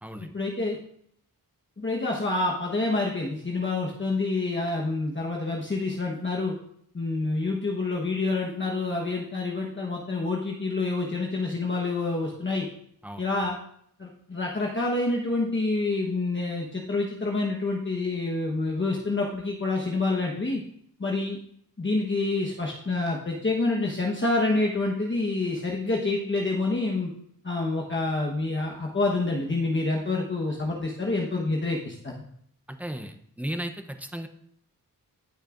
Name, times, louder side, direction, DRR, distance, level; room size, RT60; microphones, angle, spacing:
voice 1, 0.3-0.8 1.8-6.5 6.9-12.7 13.2-13.6 14.0-20.6 21.0-21.4 21.8-27.1 27.4-32.1, left 2 dB, 35° left, -2 dB, 1.2 m, -27 dB
voice 2, 32.7-34.3, right 1 dB, 5° right, 6 dB, 0.8 m, -35 dB
19.0 x 6.4 x 2.6 m, 0.67 s
wide cardioid pair, 120°, 35 cm